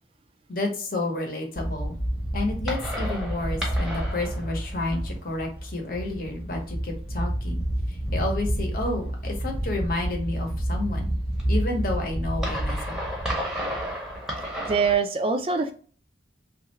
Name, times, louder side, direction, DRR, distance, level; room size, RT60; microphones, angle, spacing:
voice 1, 0.5-2.0 2.3-11.1 11.5-13.0, left 2 dB, 50° left, 2 dB, 0.9 m, -30 dB
sound 1, 1.5-14.9, equal, 5° right, 0.8 m, -29 dB
voice 2, 14.7-15.7, right 5 dB, 30° right, 5 dB, 0.4 m, -23 dB
3.2 x 2.4 x 2.9 m, 0.43 s
head